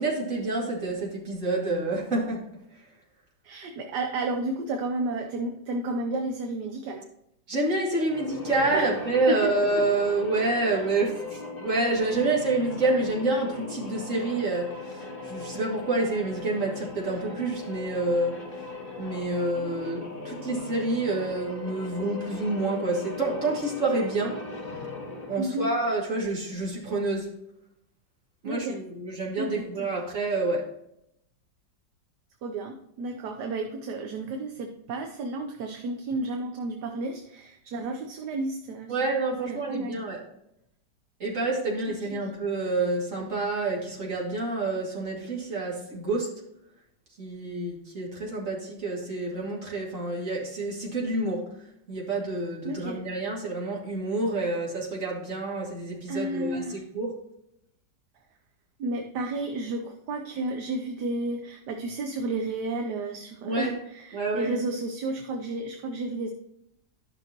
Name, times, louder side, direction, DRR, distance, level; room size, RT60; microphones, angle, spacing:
voice 1, 0.0-2.4 7.5-18.4 19.0-24.4 25.3-27.3 28.4-30.7 38.9-40.2 41.2-46.3 47.2-51.4 51.9-57.1 63.4-63.8 64.1-64.5, right 2 dB, 45° right, -3 dB, 2.7 m, -28 dB
voice 2, 3.4-7.1 8.7-8.9 9.3-9.5 25.4-25.7 28.4-28.8 29.4-29.9 32.4-39.0 39.4-40.0 42.1-42.3 52.6-53.0 56.1-56.8 58.8-66.3, right 2 dB, 70° right, 5 dB, 1.3 m, -32 dB
sound 1, 8.0-25.5, left 2 dB, 30° left, 1.7 m, -39 dB
12.5 x 5.9 x 2.9 m, 0.79 s
omnidirectional pair, 1.9 m